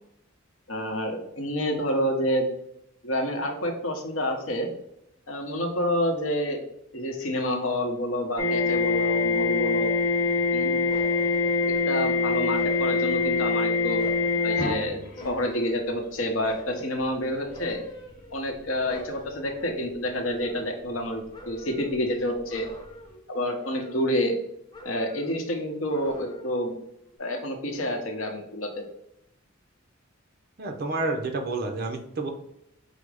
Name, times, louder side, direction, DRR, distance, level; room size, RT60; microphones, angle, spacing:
voice 1, 0.7-2.5 3.0-4.7 5.3-6.7 6.9-9.9 10.5-10.8 11.9-14.0 14.4-15.0 15.2-17.8 18.3-22.7 23.3-24.3 24.8-26.7 27.2-28.9, left 1 dB, 70° left, 3 dB, 0.8 m, -28 dB
sound 1, 8.4-15.7 16.8-17.0 17.5-17.8 19.9-20.0, left 4 dB, 40° left, 1.0 m, -25 dB
sound 2, 10.9-12.2 12.5-13.6 14.0-16.1 16.5-17.0 17.5-18.6 18.9-21.1 21.3-22.0 22.5-23.3 23.6-24.4 24.7-25.4 25.9-26.7 27.1-27.2, equal, 20° left, 0.5 m, -44 dB
voice 2, 30.6-32.3, right 3 dB, 50° right, 4 dB, 0.6 m, -29 dB
4.9 x 2.0 x 4.7 m, 0.77 s
head